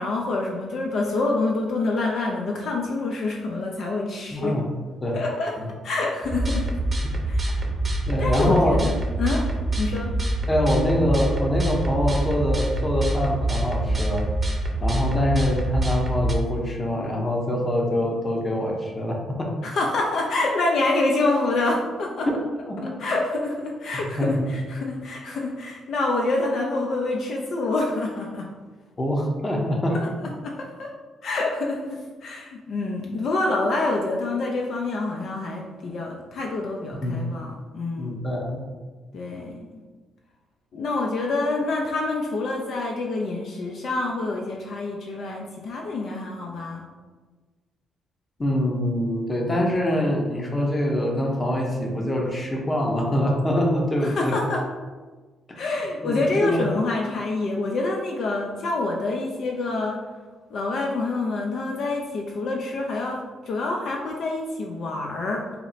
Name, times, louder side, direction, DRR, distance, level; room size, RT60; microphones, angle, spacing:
voice 1, 0.0-4.5 5.1-5.5 5.8-6.7 7.2-7.5 8.2-9.5 9.8-10.1 19.6-22.3 22.8-28.5 29.9-30.9 31.2-38.2 39.1-39.8 40.7-46.8 54.0-54.6 55.6-60.0 60.5-65.5, left 2 dB, 65° left, 0 dB, 0.5 m, -27 dB
voice 2, 4.3-4.6 5.0-5.2 5.6-5.7 7.0-7.1 7.5-7.6 8.1-8.8 10.5-14.3 14.8-19.5 22.3-22.4 22.6-23.0 23.9-24.6 29.0-30.0 37.0-37.2 38.0-38.6 48.4-54.4 55.5-55.6 56.0-56.7, left 1 dB, 25° left, 0 dB, 0.8 m, -24 dB
sound 1, 6.2-16.3, right 1 dB, 20° right, 0.7 m, -25 dB
4.2 x 2.0 x 4.0 m, 1.3 s
cardioid pair, 90°, 0 cm